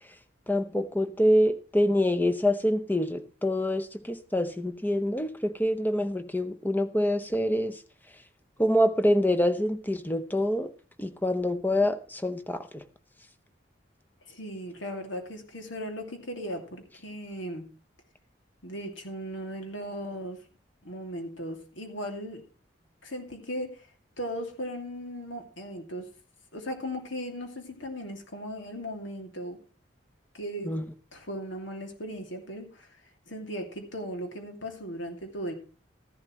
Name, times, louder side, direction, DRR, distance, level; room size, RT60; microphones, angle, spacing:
voice 1, 0.5-7.7 8.6-10.7 11.0-12.8 30.6-30.8, left 1 dB, 10° left, 9 dB, 0.7 m, -26 dB
voice 2, 14.3-17.7 18.6-20.4 20.8-22.4 23.0-23.7 24.2-26.0 26.5-29.6 30.3-30.7 31.1-33.0 33.3-35.5, equal, 80° left, 4 dB, 2.5 m, -37 dB
14.5 x 11.0 x 3.2 m, 0.37 s
head